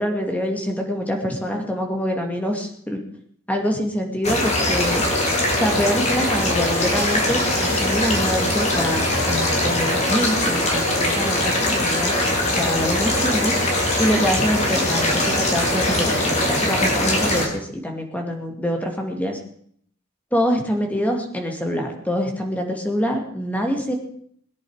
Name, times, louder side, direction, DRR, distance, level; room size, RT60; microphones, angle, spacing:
voice 1, 0.0-3.0 3.5-5.0 5.5-12.1 12.6-13.6 14.0-19.4 20.3-23.9, equal, 5° left, 3 dB, 2.6 m, -25 dB
sound 1, 4.2-17.5, left 1 dB, 30° left, 3.4 m, -21 dB
21.5 x 10.0 x 5.1 m, 0.62 s
head